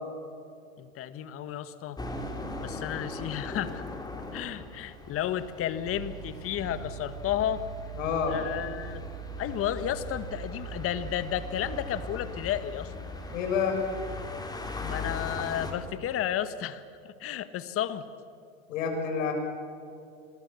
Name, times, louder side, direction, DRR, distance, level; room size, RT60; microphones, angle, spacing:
voice 1, 0.8-2.0 2.6-3.8 4.3-7.6 8.3-9.0 9.4-12.9 14.8-18.1, left 11 dB, 35° left, 12 dB, 1.6 m, -32 dB
sound 1, 2.0-15.7, left 2 dB, 10° left, 3.5 m, -40 dB
sound 2, 5.9-12.0, right 8 dB, 70° right, 7.3 m, -42 dB
voice 2, 8.0-8.4 13.3-13.8 18.7-19.3, left 6 dB, 65° left, 3 dB, 6.8 m, -28 dB
28.5 x 22.0 x 7.2 m, 2.5 s
hypercardioid pair, 110°, 41 cm